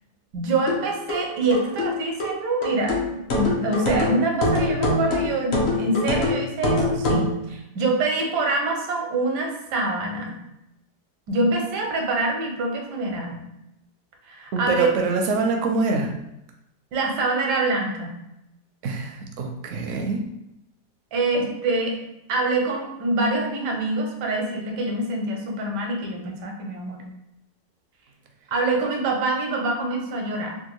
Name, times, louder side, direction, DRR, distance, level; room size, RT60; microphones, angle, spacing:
voice 1, 0.3-3.0 3.3-10.3 11.3-13.4 14.3-14.9 16.9-18.1 21.1-22.0 22.3-27.1 28.5-30.6, right 2 dB, 85° right, 2 dB, 1.3 m, -25 dB
sound 1, 0.7-7.3, left 1 dB, 60° left, 0.7 m, -24 dB
voice 2, 14.5-16.1 18.8-20.2, right 3 dB, 70° right, 2 dB, 0.7 m, -24 dB
3.5 x 2.3 x 3.0 m, 0.85 s
omnidirectional pair, 1.7 m